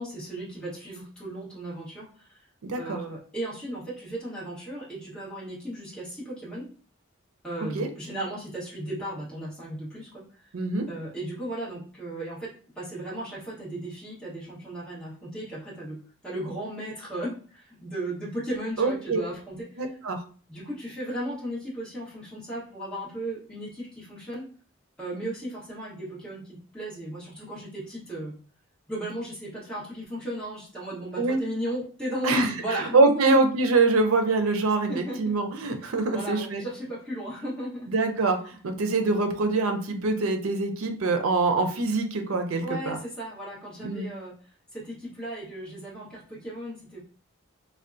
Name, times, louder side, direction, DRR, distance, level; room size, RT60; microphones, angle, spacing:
voice 1, 0.0-2.4 2.8-6.7 7.4-10.2 10.9-16.0 16.2-19.9 20.5-24.5 25.0-28.3 28.9-33.4 34.9-35.3 35.8-37.9 42.6-44.3 44.7-47.0, right 1 dB, 5° left, -8 dB, 1.1 m, -35 dB
voice 2, 2.7-3.0 7.7-7.9 10.5-10.9 18.8-19.2 19.8-20.2 31.2-31.4 32.2-36.6 37.9-43.0 43.8-44.1, right 3 dB, 85° right, 6 dB, 0.5 m, -24 dB
3.4 x 2.1 x 2.5 m, 0.41 s
head